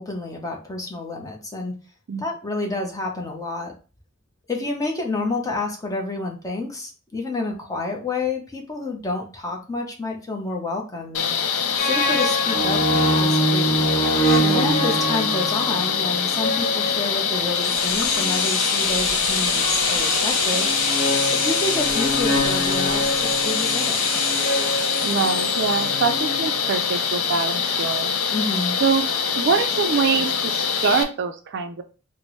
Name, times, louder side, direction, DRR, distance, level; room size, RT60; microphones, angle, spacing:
voice 1, 0.0-1.7 2.2-3.7 4.5-11.3 11.8-13.9 14.5-20.7 21.3-24.1 28.3-28.8, left 2 dB, 15° left, 1 dB, 0.7 m, -29 dB
sound 1, 11.1-31.0, left 6 dB, 90° left, 0.5 m, -24 dB
sound 2, 11.8-18.5 19.6-26.9, right 1 dB, 45° left, 1.3 m, -26 dB
voice 2, 14.4-14.8 25.0-28.1 28.8-29.1 29.3-31.8, right 5 dB, 55° right, 8 dB, 0.4 m, -24 dB
sound 3, 17.5-27.4 27.7-27.8, left 3 dB, 60° left, 0.8 m, -27 dB
4.2 x 2.0 x 3.0 m, 0.35 s
head